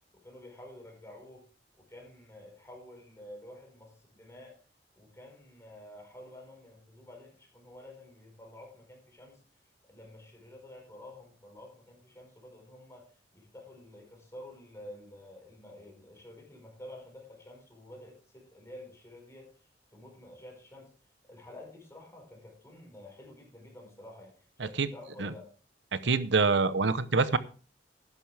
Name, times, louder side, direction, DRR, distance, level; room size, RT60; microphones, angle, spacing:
voice 1, 0.1-1.4 1.8-4.6 5.0-9.4 9.9-19.5 19.9-20.9 21.3-25.5, left 1 dB, 15° left, 0 dB, 4.9 m, -50 dB
voice 2, 25.9-27.4, right 4 dB, 80° right, 14 dB, 0.8 m, -25 dB
12.0 x 11.0 x 3.4 m, 0.39 s
head